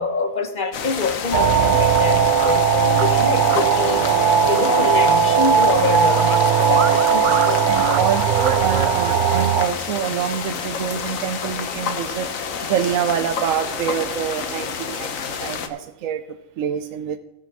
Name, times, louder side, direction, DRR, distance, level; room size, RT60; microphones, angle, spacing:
voice 1, 0.0-7.7, left 3 dB, 40° left, 1.1 m, -25 dB
sound 1, 0.7-15.7, left 6 dB, 80° left, 1.3 m, -29 dB
sound 2, 1.3-9.7, right 7 dB, 55° right, 0.5 m, -18 dB
voice 2, 7.6-12.3 12.6-17.2, right 8 dB, 80° right, 1.0 m, -26 dB
17.5 x 6.0 x 4.8 m
omnidirectional pair, 1.4 m